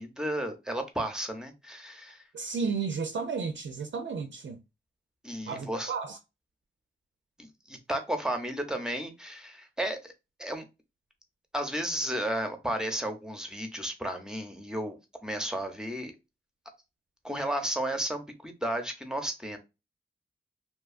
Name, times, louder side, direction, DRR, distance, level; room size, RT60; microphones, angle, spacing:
voice 1, 0.0-2.2 5.2-5.9 7.4-10.1 10.4-10.6 11.5-16.1 17.2-19.6, right 1 dB, 5° right, 0.7 m, -33 dB
voice 2, 2.3-4.6 5.5-6.2, right 5 dB, 65° right, 0.4 m, -33 dB
2.8 x 2.3 x 2.3 m
wide cardioid pair, 65°, 20 cm